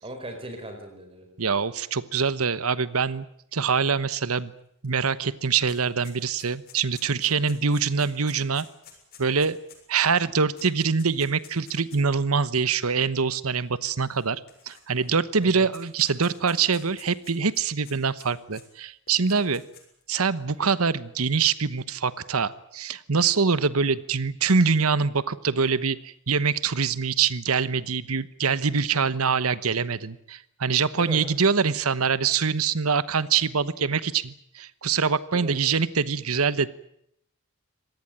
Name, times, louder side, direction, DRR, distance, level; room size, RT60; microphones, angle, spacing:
voice 1, 0.0-1.3 15.4-15.7 30.9-31.2 35.3-35.5, right 1 dB, 25° right, 5 dB, 4.7 m, -38 dB
voice 2, 1.4-3.3 3.5-4.5 4.8-8.6 9.2-9.6 9.9-14.4 14.7-19.6 20.1-36.7, right 5 dB, 90° right, 16 dB, 1.1 m, -24 dB
sound 1, 4.8-4.9 5.2-12.1 12.9-13.0 14.1-15.1 15.4-18.6 19.1-20.0, left 7 dB, 45° left, 7.1 m, -50 dB
25.5 x 19.0 x 9.0 m, 0.73 s
head